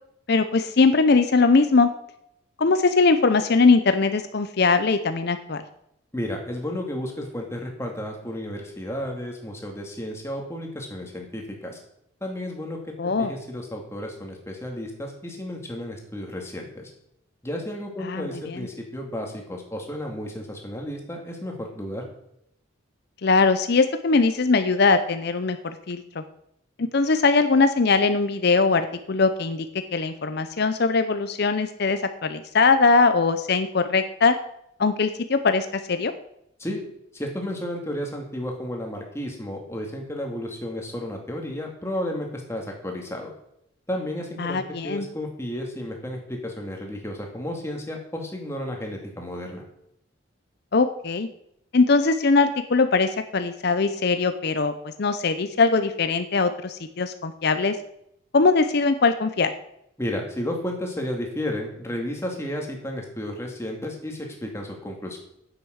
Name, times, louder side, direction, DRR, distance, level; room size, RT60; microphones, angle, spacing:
voice 1, 0.3-1.9 2.6-5.6 13.0-13.3 18.0-18.7 23.2-25.6 25.9-26.2 26.8-29.7 29.9-34.4 34.8-36.1 44.4-45.1 50.7-51.3 51.7-54.7 55.0-57.8 58.3-59.5, left 4 dB, 50° left, 10 dB, 0.6 m, -21 dB
voice 2, 6.1-11.8 12.2-12.9 13.2-16.9 17.4-22.0 36.6-36.8 37.1-43.3 43.9-49.6 60.0-65.2, left 1 dB, 15° left, 1 dB, 2.1 m, -32 dB
9.6 x 8.0 x 6.3 m, 0.76 s
head